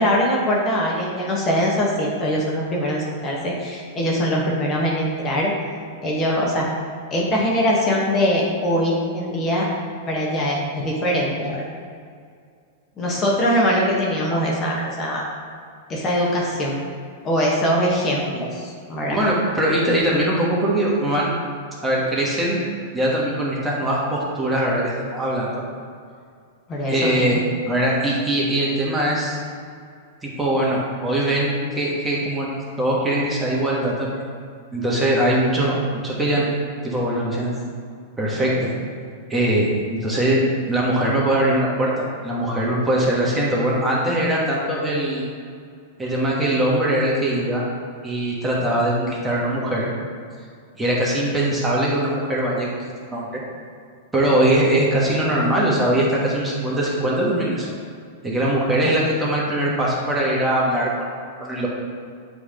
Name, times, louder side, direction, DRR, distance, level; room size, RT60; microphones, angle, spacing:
voice 1, 0.0-5.5 6.0-6.7 7.1-9.6 10.1-11.6 13.0-15.2 15.9-16.8 17.2-19.2 26.7-27.4 58.8-59.0, equal, 30° left, -3 dB, 1.2 m, -22 dB
voice 2, 19.1-21.3 21.8-22.6 22.9-25.6 26.9-27.4 27.7-29.4 30.2-32.5 32.8-34.1 34.7-35.8 36.0-36.5 36.8-37.5 38.2-38.5 39.3-45.2 46.0-47.6 48.0-49.9 50.8-52.8 53.1-53.4 54.1-57.7 58.2-61.1 61.4-61.7, right 1 dB, 10° right, -5 dB, 1.4 m, -21 dB
7.7 x 3.4 x 3.7 m, 2.2 s
hypercardioid pair, 125°, 0 cm